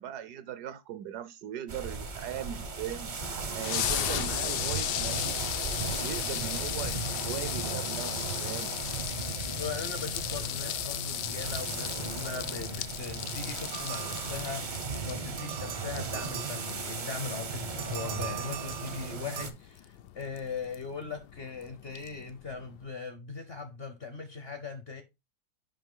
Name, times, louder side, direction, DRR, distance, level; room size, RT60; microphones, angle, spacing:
voice 1, 0.0-3.1 3.5-5.4 5.7-8.7, right 10 dB, 70° right, 1.1 m, -39 dB
sound 1, 1.7-19.5, right 4 dB, 45° right, 0.6 m, -37 dB
sound 2, 3.1-22.9, left 12 dB, 75° left, 1.1 m, -37 dB
voice 2, 9.6-25.0, left 4 dB, 50° left, 0.7 m, -39 dB
sound 3, 13.7-14.9 15.4-17.1 17.8-19.5, right 13 dB, 90° right, 1.4 m, -42 dB
5.6 x 5.4 x 3.6 m
omnidirectional pair, 1.9 m